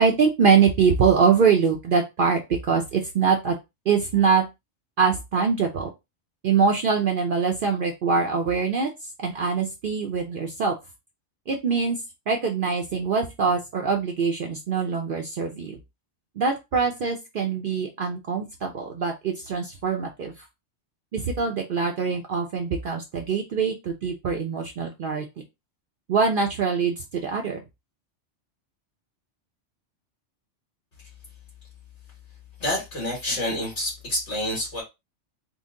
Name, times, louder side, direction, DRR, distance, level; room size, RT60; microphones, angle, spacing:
voice 1, 0.0-2.4 2.7-3.5 3.9-4.4 5.0-5.9 6.4-8.9 9.2-10.7 11.5-12.0 12.3-15.8 16.4-20.3 21.1-25.2 26.1-27.6, right 5 dB, 55° right, 0.7 m, -23 dB
voice 2, 32.6-34.8, left 1 dB, 70° left, 2.0 m, -28 dB
3.9 x 2.1 x 3.6 m
omnidirectional pair, 1.2 m